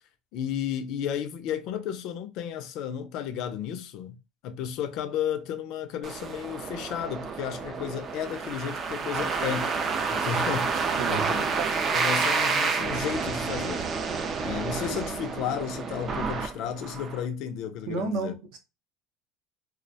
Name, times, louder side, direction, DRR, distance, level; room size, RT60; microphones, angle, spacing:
voice 1, 0.3-4.2 4.4-9.8 10.1-11.5 11.9-13.9 14.4-18.3, left 9 dB, 55° left, 0.4 m, -33 dB
sound 1, 6.0-17.2, right 5 dB, 30° right, 0.3 m, -29 dB
voice 2, 11.0-11.3 17.8-18.6, right 4 dB, 65° right, 0.6 m, -31 dB
2.3 x 2.0 x 2.6 m
cardioid pair, 150°, 0 cm